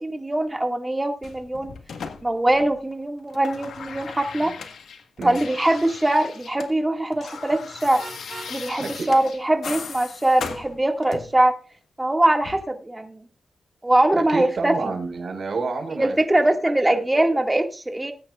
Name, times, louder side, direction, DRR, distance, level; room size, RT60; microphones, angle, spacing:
voice 1, 0.0-1.7 2.2-4.5 5.2-8.0 8.5-11.5 12.0-13.2 13.8-14.7 16.0-18.1, right 1 dB, 15° right, 5 dB, 2.1 m, -22 dB
sound 1, 1.2-2.9 3.2-6.7 7.0-11.4 12.4-12.6, left 6 dB, 85° left, 1.6 m, -38 dB
Vehicle horn car horn honking, 8.0-8.6, right 3 dB, 45° right, 6.0 m, -39 dB
voice 2, 8.8-9.1 14.1-16.2 16.6-17.4, right 4 dB, 65° right, 4 dB, 5.0 m, -30 dB
19.5 x 9.3 x 2.5 m, 0.34 s
cardioid pair, 80°, 0 cm